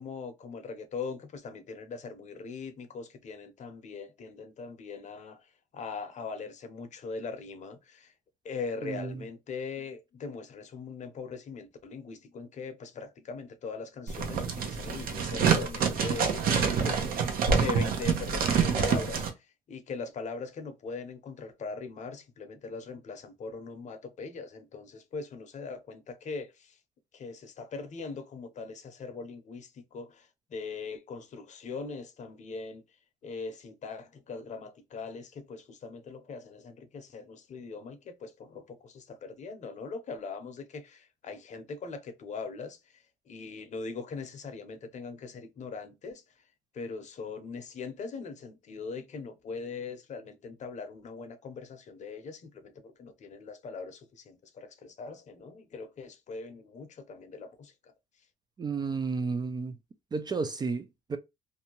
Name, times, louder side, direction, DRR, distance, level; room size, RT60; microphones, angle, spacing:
voice 1, 0.0-8.1 8.4-26.8 27.1-32.8 33.2-46.2 46.7-57.7, left 4 dB, 45° left, 0.7 m, -41 dB
sound 1, 14.1-19.3, right 6 dB, 60° right, 0.7 m, -27 dB
voice 2, 58.6-59.7 60.1-61.2, right 4 dB, 25° right, 0.3 m, -32 dB
2.6 x 2.2 x 2.9 m
cardioid pair, 110°, 17 cm